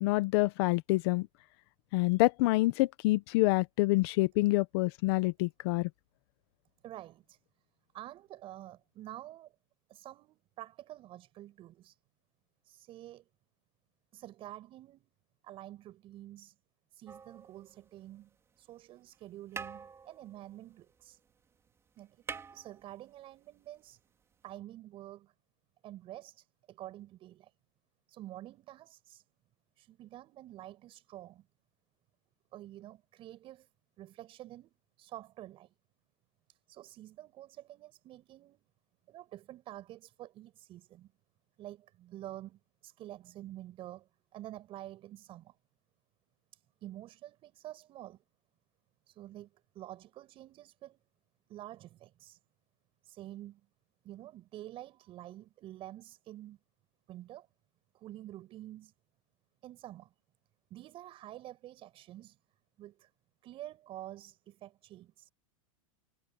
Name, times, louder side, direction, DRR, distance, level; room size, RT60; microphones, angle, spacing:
voice 1, 0.0-1.3 1.9-5.9, left 21 dB, 50° left, 0.9 m, -27 dB
voice 2, 6.8-7.4 7.9-9.5 9.9-12.0 12.6-13.3 14.1-15.1 15.4-16.6 16.9-21.2 22.0-22.2 22.5-24.0 24.4-25.3 25.8-27.5 28.1-29.2 29.8-31.5 32.5-33.7 34.0-35.7 36.5-38.6 39.1-41.1 41.6-45.6 46.5-48.2 49.1-51.0 51.5-52.4 53.0-53.6 54.0-56.6 57.1-57.5 57.9-58.9 59.6-60.1 60.7-62.4 62.8-63.1 63.4-65.3, right 14 dB, 35° right, 7.7 m, -48 dB
sound 1, 17.1-18.2 19.1-19.2 19.5-21.4 21.7-21.8 22.0-23.4 24.5-24.6, right 6 dB, 15° right, 4.4 m, -46 dB
supercardioid pair, 150°, 17 cm